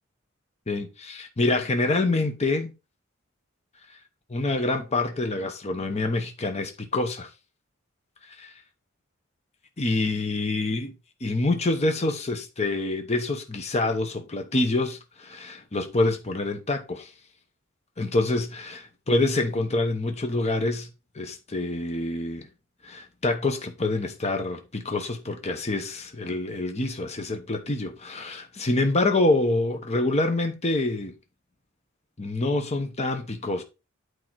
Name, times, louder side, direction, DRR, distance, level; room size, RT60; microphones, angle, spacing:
voice 1, 0.7-2.7 3.9-4.0 4.3-7.3 8.2-8.5 9.8-10.9 11.2-17.1 18.0-20.9 21.1-22.5 22.8-31.1 32.2-33.6, left 2 dB, 30° left, 1.0 m, -26 dB
8.9 x 4.7 x 4.6 m
head